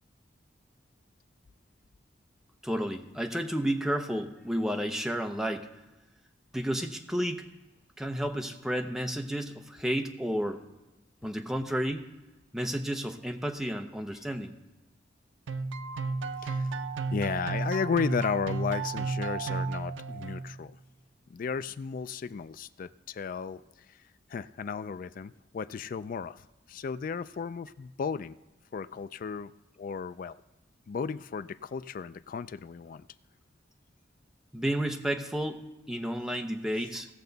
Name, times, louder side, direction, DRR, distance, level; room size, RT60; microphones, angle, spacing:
voice 1, 2.6-5.7 6.5-7.4 8.0-10.6 11.2-12.0 12.5-14.6 34.5-35.6 35.9-37.1, equal, 5° right, 4 dB, 0.7 m, -31 dB
sound 1, 15.5-20.7, right 4 dB, 85° right, 0.5 m, -33 dB
voice 2, 17.1-20.8 21.3-23.6 23.9-24.0 24.3-28.4 28.7-29.5 29.8-30.4 30.9-33.1, left 6 dB, 50° left, 15 dB, 0.3 m, -34 dB
17.5 x 6.8 x 4.0 m, 1.1 s
head